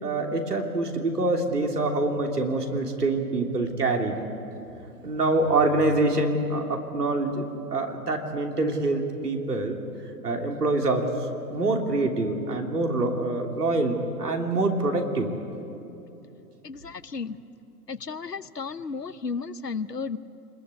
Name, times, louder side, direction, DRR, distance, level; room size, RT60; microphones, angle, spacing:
voice 1, 0.0-4.2 5.0-9.8 10.2-11.1 11.5-15.3, right 2 dB, 75° right, 3 dB, 3.2 m, -25 dB
voice 2, 16.6-17.4 17.9-20.2, left 5 dB, 85° left, 17 dB, 1.0 m, -33 dB
27.0 x 21.0 x 8.5 m, 2.9 s
figure-of-eight pair, 115°, 47 cm